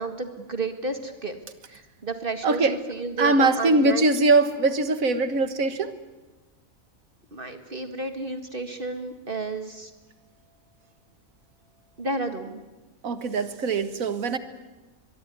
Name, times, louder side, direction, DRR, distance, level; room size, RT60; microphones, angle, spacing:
voice 1, 0.0-1.4 1.7-4.0 7.3-9.9 12.0-12.6, right 3 dB, 40° right, 8 dB, 2.1 m, -32 dB
voice 2, 2.4-2.8 3.2-6.0 13.0-14.4, right 3 dB, 85° right, 11 dB, 2.0 m, -22 dB
23.5 x 22.5 x 9.6 m, 1.1 s
omnidirectional pair, 1.4 m